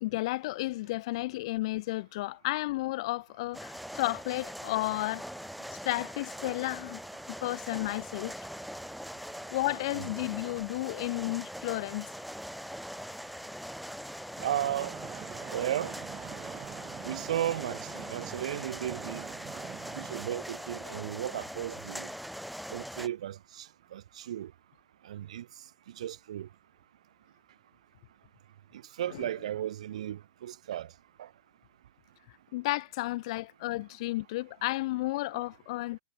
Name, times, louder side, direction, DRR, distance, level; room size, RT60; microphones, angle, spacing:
voice 1, 0.0-5.2 5.8-7.0 7.4-8.3 9.5-12.1 29.1-29.3 32.5-36.0, left 19 dB, 55° left, 0.7 m, -32 dB
sound 1, 3.5-23.1, equal, ahead, 2.5 m, -42 dB
sound 2, 14.4-20.2, right 13 dB, 30° right, 1.8 m, -45 dB
voice 2, 14.4-14.9 15.5-15.9 17.0-19.3 19.9-22.1 22.7-24.5 25.0-25.4 26.0-26.5 29.0-30.9 31.2-31.3 35.3-35.4, right 11 dB, 70° right, 3.3 m, -35 dB
hypercardioid pair, 115°, 4 cm